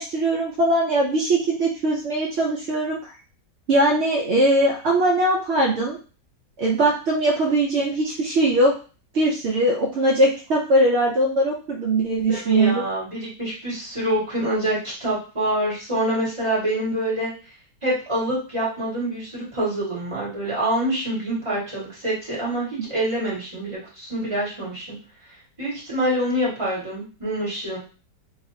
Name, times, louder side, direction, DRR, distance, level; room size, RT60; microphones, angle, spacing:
voice 1, 0.0-3.1 3.7-6.0 6.6-8.7 9.1-12.8, right 1 dB, 75° right, -1 dB, 0.6 m, -20 dB
voice 2, 12.3-17.3 17.8-24.9 25.6-27.8, right 1 dB, 20° right, -8 dB, 1.6 m, -26 dB
3.2 x 2.9 x 2.7 m, 0.36 s
omnidirectional pair, 1.9 m